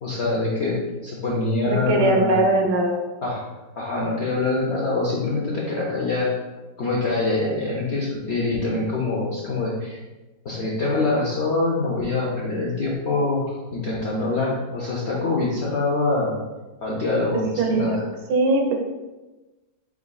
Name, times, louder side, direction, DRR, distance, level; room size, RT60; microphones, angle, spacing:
voice 1, 0.0-2.4 3.2-3.4 3.8-6.3 6.8-10.0 10.4-16.4 16.8-18.0, left 2 dB, 85° left, -4 dB, 0.5 m, -24 dB
voice 2, 1.7-3.0 17.6-18.0 18.3-18.7, right 2 dB, 75° right, 3 dB, 1.1 m, -20 dB
4.8 x 4.0 x 2.3 m, 1.1 s
omnidirectional pair, 2.0 m